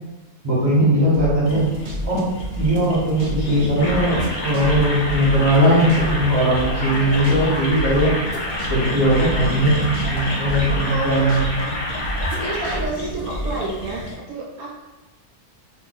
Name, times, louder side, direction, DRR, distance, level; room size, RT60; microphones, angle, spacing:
voice 1, 0.4-1.7 2.0-2.3 2.5-8.1 8.7-11.5, right 1 dB, 15° right, -7 dB, 1.2 m, -19 dB
sound 1, 1.1-3.4 3.7-6.3 6.5-10.2 10.4-11.6 12.0-13.5, right 1 dB, 55° right, 0.6 m, -29 dB
sound 2, 1.4-14.1, left 1 dB, 70° left, 0.4 m, -33 dB
sound 3, 3.8-12.8, left 1 dB, 35° left, 0.9 m, -28 dB
voice 2, 10.9-12.1 12.4-14.7, right 3 dB, 75° right, -3 dB, 1.1 m, -29 dB
2.7 x 2.7 x 4.1 m, 1.1 s
omnidirectional pair, 1.6 m